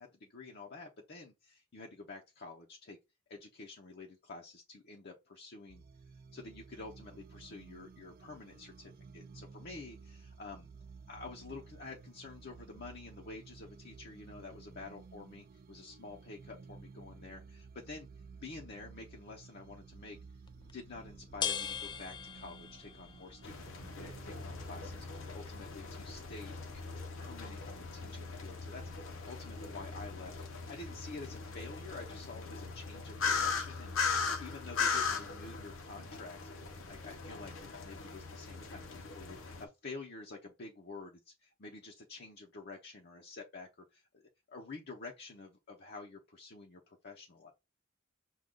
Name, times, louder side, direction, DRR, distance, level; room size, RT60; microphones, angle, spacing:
voice 1, 0.0-3.0 3.3-5.8 6.3-10.7 11.1-18.1 18.4-20.2 20.7-26.6 26.9-47.5, left 3 dB, 55° left, 0.7 m, -49 dB
sound 1, 5.7-25.1, right 4 dB, 45° right, 0.4 m, -54 dB
sound 2, 20.4-31.9, left 8 dB, 20° left, 0.3 m, -46 dB
sound 3, 23.4-39.6, left 5 dB, 80° left, 0.9 m, -39 dB
6.3 x 2.3 x 3.7 m
head